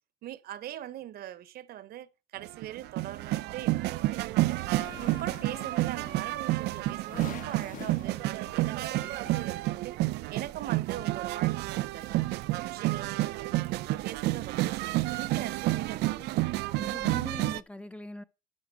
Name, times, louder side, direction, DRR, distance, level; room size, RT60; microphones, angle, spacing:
voice 1, 0.2-4.2 4.5-12.3 12.6-16.6, right 12 dB, 65° right, 0.8 m, -42 dB
sound 1, 2.4-17.6, right 18 dB, 80° right, 0.5 m, -30 dB
sound 2, 4.7-9.8, left 8 dB, 50° left, 1.1 m, -47 dB
voice 2, 16.7-18.2, left 2 dB, 5° left, 0.6 m, -42 dB
11.5 x 5.8 x 5.1 m
cardioid pair, 110°, 17 cm